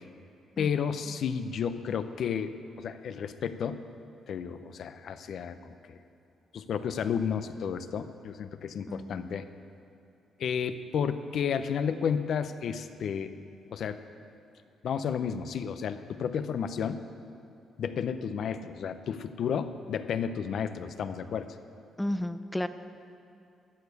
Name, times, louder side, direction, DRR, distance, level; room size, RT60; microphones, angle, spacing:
voice 1, 0.6-2.5 2.8-3.8 4.3-6.0 6.5-9.5 10.4-13.3 13.7-14.0 14.8-17.0 17.8-21.5, left 7 dB, 65° left, 11 dB, 0.6 m, -32 dB
voice 2, 8.9-9.4 22.0-22.7, left 1 dB, 5° left, 11 dB, 0.6 m, -33 dB
13.0 x 6.9 x 8.0 m, 2.7 s
cardioid pair, 90°, 0 cm